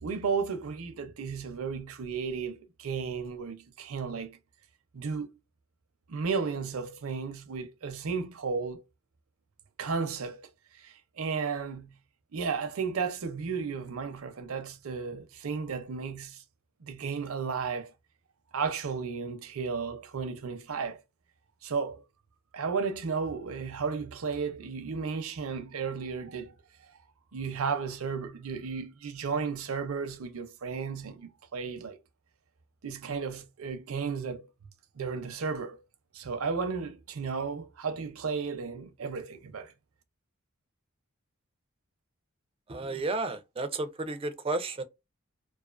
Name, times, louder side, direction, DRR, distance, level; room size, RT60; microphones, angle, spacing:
voice 1, 0.0-4.4 4.9-5.3 6.1-8.8 9.8-10.5 10.8-11.9 12.3-16.4 16.8-17.9 18.5-21.0 21.6-22.0 22.5-26.5 27.3-32.0 32.8-34.4 35.0-35.8 36.1-39.7, right 5 dB, 80° right, 0.6 m, -34 dB
voice 2, 42.7-44.8, right 2 dB, 25° right, 0.4 m, -32 dB
2.4 x 2.3 x 2.4 m
head